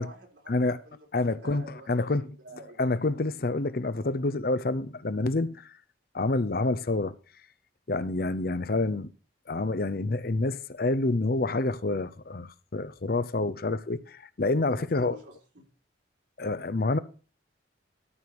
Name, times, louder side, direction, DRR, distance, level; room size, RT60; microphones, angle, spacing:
voice 1, 0.0-2.8 14.7-15.6, right 1 dB, 75° right, 3.9 m, -49 dB
voice 2, 1.1-2.3 2.8-5.7 6.1-7.1 7.9-9.1 9.5-15.2 16.4-17.0, left 2 dB, 55° left, 0.7 m, -28 dB
13.0 x 4.8 x 6.9 m
head